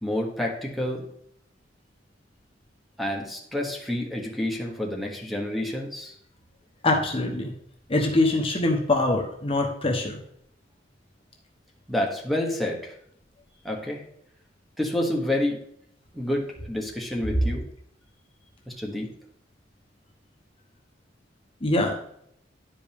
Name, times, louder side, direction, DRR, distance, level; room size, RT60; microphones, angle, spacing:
voice 1, 0.0-1.1 3.0-6.1 11.9-13.0 13.6-14.0 14.8-15.6 16.1-17.6 18.7-19.1, left 1 dB, ahead, -2 dB, 1.2 m, -29 dB
voice 2, 6.8-7.5 7.9-10.2 21.6-22.0, left 2 dB, 30° left, 1 dB, 1.0 m, -23 dB
11.0 x 5.2 x 3.5 m, 0.71 s
head